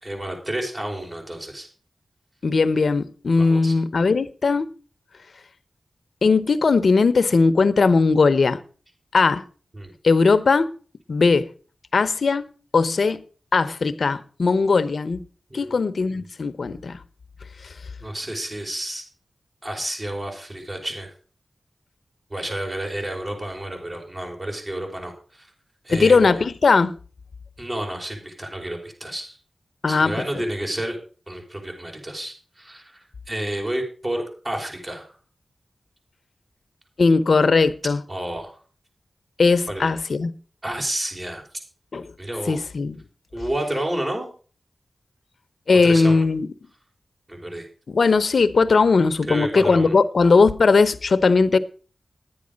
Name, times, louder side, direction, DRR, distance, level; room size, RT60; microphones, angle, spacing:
voice 1, 0.0-1.7 3.4-3.7 9.7-9.9 15.5-16.2 18.0-19.0 19.6-21.1 22.3-25.5 25.8-26.4 27.6-29.4 29.9-31.0 31.3-35.0 38.1-38.5 39.7-39.9 40.6-41.4 42.2-42.6 43.3-44.3 45.8-46.2 47.3-47.6 49.3-49.9, right 1 dB, 35° right, 5.1 m, -30 dB
voice 2, 2.4-4.7 6.2-8.6 9.1-9.4 10.0-10.7 11.1-11.5 11.9-12.5 12.7-13.2 13.5-15.2 15.5-17.0 25.9-26.9 29.8-30.1 37.0-38.0 39.4-40.3 41.9-42.1 42.5-43.0 45.7-46.5 47.9-51.6, left 4 dB, 75° left, 0.8 m, -18 dB
11.0 x 9.7 x 5.2 m
cardioid pair, 40°, 0 cm